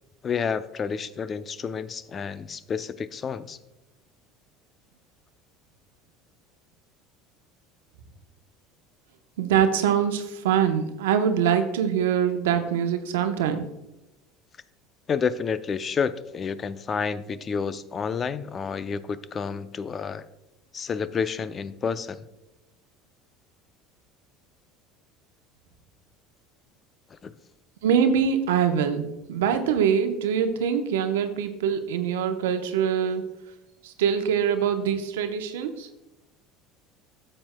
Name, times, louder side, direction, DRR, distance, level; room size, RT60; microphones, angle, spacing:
voice 1, 0.2-3.6 15.1-20.2 20.7-22.2 27.1-27.3, left 6 dB, 35° left, 14 dB, 0.5 m, -30 dB
voice 2, 9.4-13.6 27.8-33.3 33.8-35.9, right 8 dB, 90° right, 7 dB, 0.8 m, -24 dB
13.0 x 7.6 x 2.2 m, 0.94 s
supercardioid pair, 95°, 0 cm